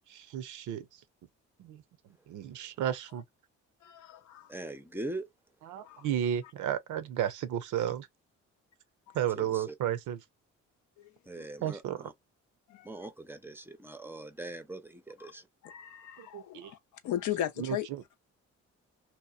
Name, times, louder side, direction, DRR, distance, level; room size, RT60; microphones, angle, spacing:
voice 1, 0.1-1.0 1.6-3.2 5.6-8.1 9.1-10.2 11.6-12.1 16.2-16.7 17.6-18.0, right 10 dB, 80° right, 0.6 m, -33 dB
voice 2, 3.8-4.5 5.8-6.1 11.0-11.1 11.4-11.5 12.7-12.9 15.2-15.3 15.6-16.8 17.0-17.8, left 11 dB, 70° left, 0.6 m, -36 dB
voice 3, 4.5-5.3 9.4-9.7 11.3-12.1 12.8-15.5, right 2 dB, 5° right, 0.5 m, -41 dB
2.9 x 2.0 x 2.3 m
cardioid pair, 90°, 30 cm